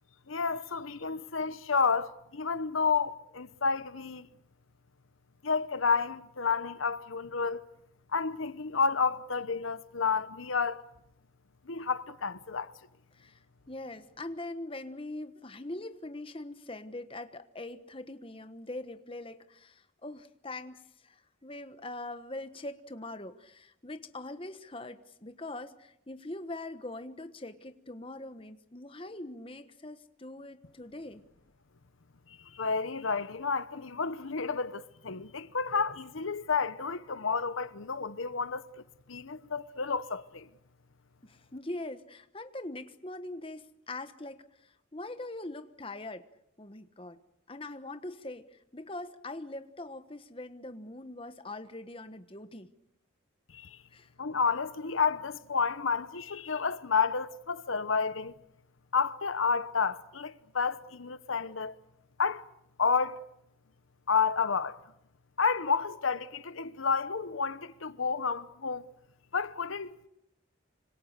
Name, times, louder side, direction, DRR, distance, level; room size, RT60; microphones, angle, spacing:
voice 1, 0.3-4.3 5.4-7.6 8.1-10.8 11.7-12.7 32.3-38.6 39.1-40.5 53.5-53.8 54.2-58.3 58.9-61.7 62.2-62.4 62.8-63.2 64.1-64.8 65.4-68.9 69.3-69.9, left 5 dB, 80° left, 1.0 m, -30 dB
voice 2, 13.7-31.3 41.2-46.3 46.6-47.2 47.5-52.7 53.9-54.1, left 2 dB, 25° left, 1.2 m, -42 dB
26.0 x 26.0 x 6.7 m
head